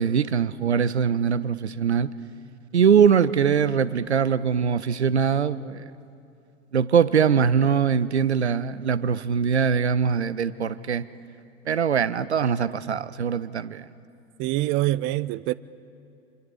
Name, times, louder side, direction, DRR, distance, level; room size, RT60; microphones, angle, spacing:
voice 1, 0.0-2.1 2.7-5.8 6.7-11.1 11.7-13.8, right 7 dB, 80° right, 0.7 m, -22 dB
voice 2, 14.4-15.5, right 17 dB, 35° right, 0.5 m, -25 dB
27.5 x 24.0 x 5.0 m
figure-of-eight pair, 75°, 33 cm